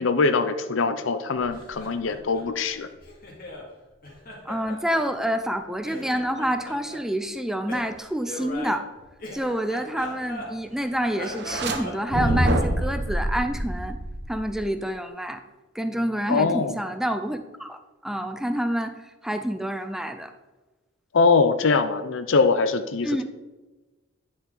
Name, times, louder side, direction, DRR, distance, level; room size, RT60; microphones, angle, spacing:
voice 1, 0.0-2.9 16.3-16.8 21.1-23.2, left 4 dB, 75° left, 9 dB, 0.6 m, -22 dB
Laughter, 1.4-3.7 4.0-5.6 5.8-7.0 7.7-10.8 11.1-13.0, left 1 dB, 45° left, 2.1 m, -40 dB
voice 2, 4.5-8.9 9.3-14.0 14.3-15.4 15.7-18.9 19.2-20.3 23.0-23.2, equal, ahead, 8 dB, 0.5 m, -28 dB
sound 1, 11.3-11.8 12.1-14.7, right 1 dB, 55° right, 1.0 m, -26 dB
10.0 x 6.0 x 3.8 m, 1.2 s
head